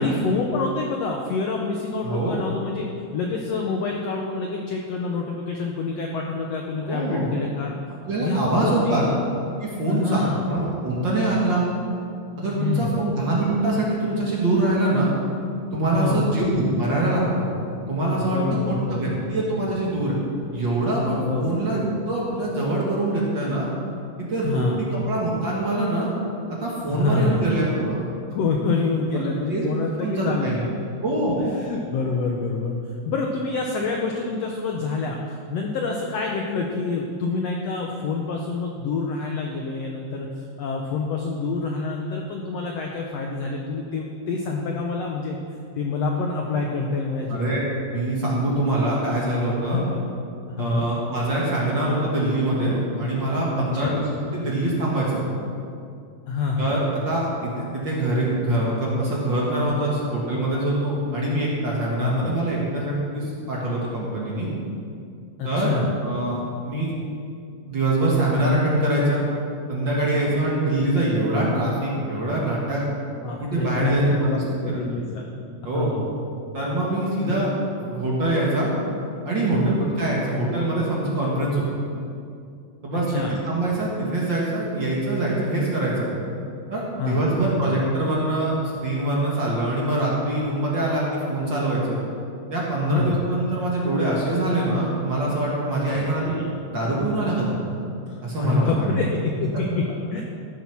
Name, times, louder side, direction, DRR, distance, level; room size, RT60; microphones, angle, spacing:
voice 1, 0.0-2.9 3.1-7.7 8.2-9.2 9.9-10.4 12.5-13.0 15.9-16.3 18.2-19.2 21.3-21.6 24.4-24.9 26.9-27.5 28.3-30.8 31.4-32.8 33.0-45.4 45.8-47.6 49.7-50.0 50.6-50.9 53.6-54.0 56.3-56.7 62.0-62.3 65.4-65.9 70.2-70.4 73.2-75.3 75.7-76.1 77.3-77.4 79.5-79.8 82.9-83.4 87.0-87.4 92.9-93.2 95.9-96.5 98.1-99.8 100.1-100.2, left 4 dB, 80° left, 1 dB, 1.5 m, -27 dB
voice 2, 6.8-7.3 8.1-9.0 9.6-11.7 12.4-15.1 15.7-17.5 17.9-18.4 18.7-20.2 20.5-21.8 22.1-23.7 24.2-26.1 26.5-28.0 29.2-29.6 30.0-30.6 31.0-31.4 47.3-47.6 47.9-49.8 50.6-55.2 56.6-64.5 65.4-66.9 67.7-69.2 69.7-72.8 73.4-74.8 75.6-75.9 76.5-77.5 77.8-78.7 79.3-81.6 82.8-83.1 83.4-86.1 86.7-88.6 88.8-92.0 92.5-96.3 96.7-97.6 98.2-99.0, right 1 dB, 40° right, -5 dB, 1.9 m, -24 dB
14.0 x 7.1 x 6.0 m, 2.5 s
omnidirectional pair, 3.9 m